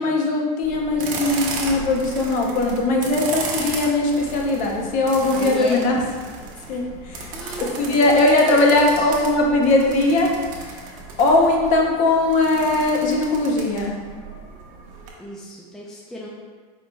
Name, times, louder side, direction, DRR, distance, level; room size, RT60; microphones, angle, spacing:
voice 1, 0.0-6.0 6.7-7.3 7.6-10.4 11.2-14.0, left 2 dB, 40° left, 0 dB, 0.7 m, -19 dB
sound 1, 0.6-15.1, right 3 dB, 45° right, 0.8 m, -35 dB
voice 2, 5.2-5.9 7.3-9.3 15.2-16.3, equal, 5° left, -4 dB, 0.4 m, -35 dB
4.8 x 4.0 x 2.3 m, 1.5 s
supercardioid pair, 145°, 19 cm